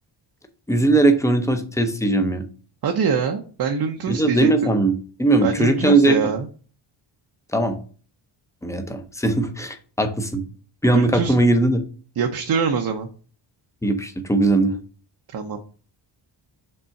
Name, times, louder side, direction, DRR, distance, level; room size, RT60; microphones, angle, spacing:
voice 1, 0.7-2.4 4.1-4.9 5.2-6.3 7.5-7.8 8.6-10.4 10.8-11.8 13.8-14.8, right 2 dB, 5° left, 6 dB, 0.6 m, -19 dB
voice 2, 2.8-4.7 5.4-6.5 10.9-11.3 12.2-13.1 15.3-15.6, right 6 dB, 50° right, 3 dB, 0.7 m, -24 dB
5.4 x 3.7 x 5.7 m, 0.40 s
wide cardioid pair, 180°, 48 cm